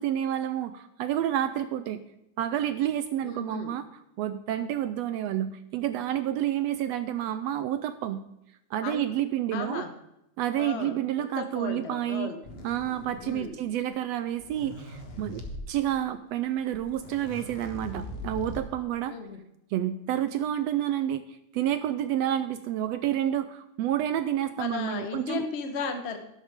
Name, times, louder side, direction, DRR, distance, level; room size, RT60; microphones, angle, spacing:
voice 1, 0.0-2.0 2.4-8.2 8.7-9.8 10.4-12.3 12.6-15.4 15.7-19.2 19.7-25.4, right 11 dB, 75° right, 12 dB, 1.6 m, -29 dB
voice 2, 3.2-3.7 8.8-9.1 9.5-9.9 10.6-12.4 13.2-13.5 19.1-19.4 24.6-26.2, left 5 dB, 65° left, 6 dB, 0.6 m, -35 dB
sound 1, 12.4-13.6 14.3-15.6 16.5-16.6 16.7-18.8, left 1 dB, 35° left, 1.0 m, -41 dB
12.0 x 11.5 x 3.6 m, 0.85 s
omnidirectional pair, 3.3 m